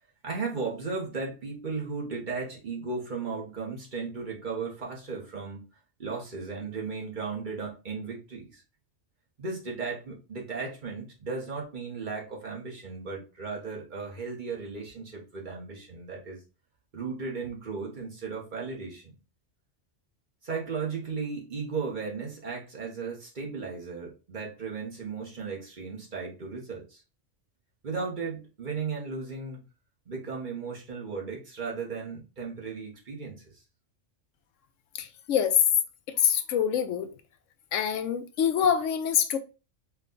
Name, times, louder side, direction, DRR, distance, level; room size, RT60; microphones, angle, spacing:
voice 1, 0.2-5.6 6.0-8.6 9.4-16.4 16.9-19.2 20.4-27.0 27.8-29.6 30.1-33.5, right 4 dB, 45° right, 1.1 m, -35 dB
voice 2, 34.9-35.6 36.2-37.1 37.7-39.4, left 8 dB, 85° left, 1.0 m, -25 dB
4.6 x 2.3 x 3.7 m
omnidirectional pair, 1.3 m